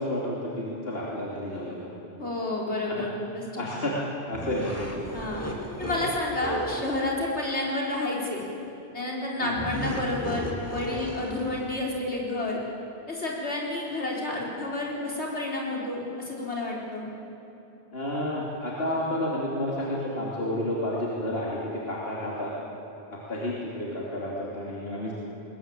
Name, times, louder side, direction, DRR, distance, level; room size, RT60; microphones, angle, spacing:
voice 1, 0.0-1.9 2.9-3.0 3.6-5.1 5.8-5.9 9.4-9.5 17.9-21.6 21.8-22.5 23.1-25.1, left 1 dB, 60° left, -5 dB, 3.2 m, -31 dB
voice 2, 2.2-3.7 5.1-5.5 5.8-8.4 8.9-12.6 13.1-17.1, left 2 dB, 75° left, -3 dB, 4.7 m, -30 dB
sound 1, 4.3-7.0 9.6-11.9, equal, 15° left, 2.3 m, -35 dB
21.0 x 21.0 x 8.8 m, 2.9 s
omnidirectional pair, 1.1 m